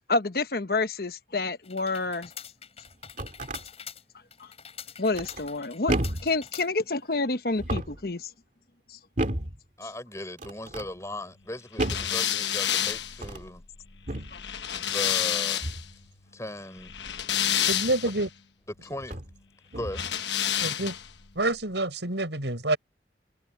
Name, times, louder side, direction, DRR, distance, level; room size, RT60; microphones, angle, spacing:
voice 1, 0.1-2.3 4.4-4.5 5.0-8.3 8.9-9.0 14.3-14.4, left 3 dB, 55° left, 1.2 m, -28 dB
sound 1, 1.6-7.1, left 8 dB, 35° left, 5.5 m, -45 dB
sound 2, 2.9-3.6 5.1-5.5 5.9-6.4 7.5-8.1 9.2-9.6 10.4-10.9 11.8-12.2 13.1-13.5 14.1-14.4 15.6-15.9 18.0-18.1 19.0-19.3 19.7-20.1, right 1 dB, 45° right, 2.3 m, -32 dB
voice 2, 9.8-13.6 14.8-15.7 16.3-16.9 18.8-19.2 19.8-20.0, left 1 dB, 15° left, 7.2 m, -38 dB
sound 3, 11.8-15.9 16.8-18.3 19.9-21.2, left 10 dB, 85° left, 1.2 m, -29 dB
voice 3, 17.7-18.3 20.6-21.0 21.4-22.8, right 2 dB, 85° right, 7.2 m, -27 dB
head